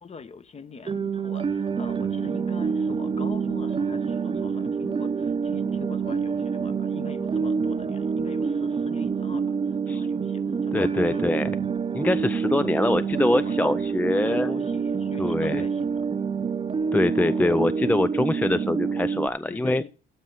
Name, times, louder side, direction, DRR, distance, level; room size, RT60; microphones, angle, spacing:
voice 1, 0.0-11.3 12.7-16.1 17.1-17.6 19.4-19.9, left 5 dB, 30° left, 0.9 m, -43 dB
sound 1, 0.8-19.3, right 5 dB, 25° right, 0.8 m, -27 dB
voice 2, 10.7-11.5 11.9-14.7 15.2-15.6 16.9-19.8, left 1 dB, 10° left, 0.4 m, -24 dB
12.5 x 5.4 x 5.8 m
cardioid pair, 90°, 20 cm